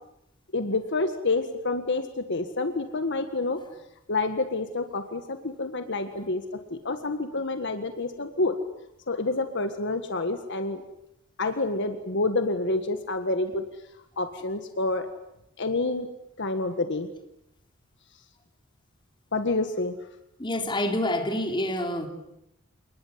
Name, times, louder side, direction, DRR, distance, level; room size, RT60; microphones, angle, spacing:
voice 1, 0.5-3.6 4.1-6.4 6.7-8.5 9.1-10.8 11.4-13.6 14.2-15.1 15.6-16.1 16.4-17.1 19.3-19.9, left 2 dB, 60° left, 8 dB, 1.7 m, -28 dB
voice 2, 20.4-22.1, left 1 dB, 25° left, 4 dB, 3.7 m, -27 dB
28.0 x 20.5 x 9.5 m, 0.86 s
head